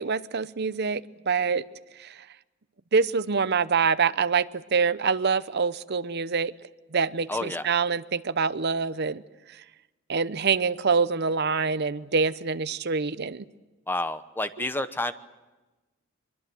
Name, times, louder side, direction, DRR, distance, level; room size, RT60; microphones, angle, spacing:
voice 1, 0.0-1.6 2.0-2.2 2.9-6.5 6.9-9.2 10.1-13.4, right 5 dB, 55° right, 14 dB, 0.8 m, -25 dB
voice 2, 7.3-7.7 13.9-15.1, left 2 dB, 10° left, 11 dB, 0.9 m, -29 dB
24.0 x 22.5 x 7.8 m, 1.1 s
head